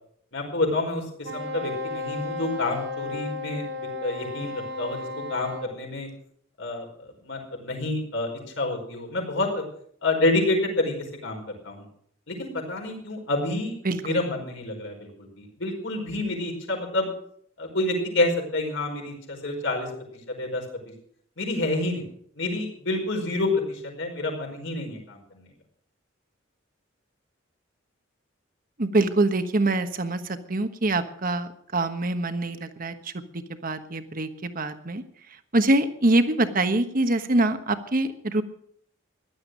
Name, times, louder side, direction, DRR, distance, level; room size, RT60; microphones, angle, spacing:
voice 1, 0.3-6.1 6.6-8.3 8.6-9.6 10.0-11.8 12.3-13.7 14.0-17.1 17.6-19.9 20.3-20.6 21.4-22.0 22.3-25.5, left 2 dB, 65° left, 1 dB, 5.0 m, -28 dB
Wind instrument woodwind instrument, 1.2-5.7, left 2 dB, 85° right, 4.0 m, -34 dB
voice 2, 13.8-14.2 28.8-35.0 35.5-38.4, right 2 dB, 45° right, 9 dB, 1.3 m, -25 dB
15.5 x 11.5 x 6.5 m, 0.65 s
head